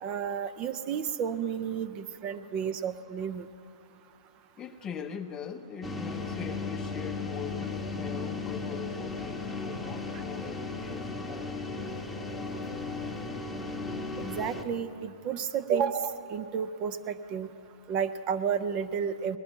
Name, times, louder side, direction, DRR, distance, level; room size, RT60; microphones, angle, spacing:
voice 1, 0.0-3.4 14.2-17.5 17.9-19.4, right 7 dB, 30° right, 11 dB, 0.5 m, -31 dB
voice 2, 4.6-11.6, left 7 dB, 20° left, 9 dB, 0.6 m, -41 dB
sound 1, 5.8-14.6, left 3 dB, 5° left, 0.9 m, -35 dB
19.0 x 11.0 x 4.4 m, 2.6 s
hypercardioid pair, 130°, 3 cm